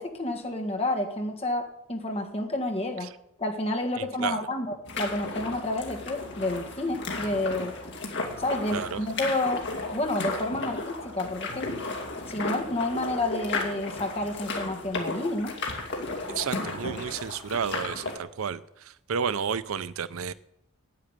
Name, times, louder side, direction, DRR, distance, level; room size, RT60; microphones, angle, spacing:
voice 1, 0.0-3.1 3.4-7.8 8.4-9.6 9.9-11.7 12.3-15.5, left 2 dB, 25° left, 3 dB, 1.7 m, -30 dB
voice 2, 4.0-4.4 8.7-9.0 16.3-20.3, right 6 dB, 70° right, 16 dB, 0.5 m, -32 dB
sound 1, 4.9-18.2, left 3 dB, 55° left, 2.5 m, -34 dB
10.0 x 8.9 x 8.9 m, 0.78 s
head